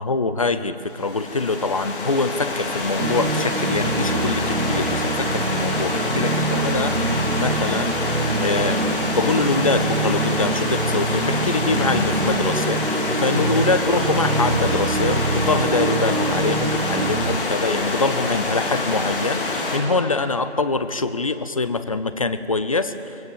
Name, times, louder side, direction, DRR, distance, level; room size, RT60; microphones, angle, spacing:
voice 1, 0.0-7.0 7.4-7.9 8.4-8.8 9.1-22.9, left 3 dB, 30° left, 12 dB, 0.6 m, -24 dB
Stream / Liquid, 0.9-19.8, left 2 dB, 45° left, 3.7 m, -26 dB
sound 1, 3.0-17.4, right 3 dB, 85° right, 1.4 m, -25 dB
23.5 x 17.0 x 7.5 m, 2.8 s
figure-of-eight pair, 155°, 35 cm